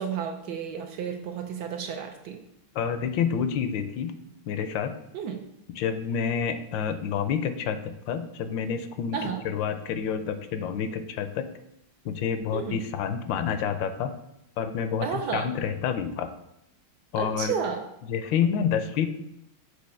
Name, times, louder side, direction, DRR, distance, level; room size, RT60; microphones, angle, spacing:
voice 1, 0.0-2.4 5.1-5.4 9.1-9.4 12.5-12.8 15.0-15.5 17.2-17.8, right 7 dB, 70° right, 4 dB, 1.1 m, -32 dB
voice 2, 2.7-4.2 4.5-4.9 5.7-11.5 12.0-14.1 14.6-16.3 17.1-17.5 18.1-19.1, left 7 dB, 80° left, 10 dB, 1.3 m, -28 dB
6.3 x 2.8 x 5.5 m, 0.82 s
omnidirectional pair, 2.1 m